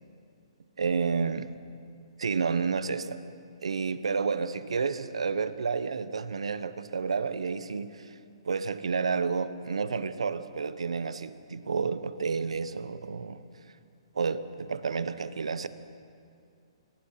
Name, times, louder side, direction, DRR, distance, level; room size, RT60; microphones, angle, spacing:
voice 1, 0.8-1.5 2.2-3.2 3.6-8.1 8.4-13.4 14.1-15.7, right 5 dB, 90° right, 13 dB, 1.1 m, -30 dB
27.0 x 20.5 x 5.8 m, 2.5 s
hypercardioid pair, 155°, 3 cm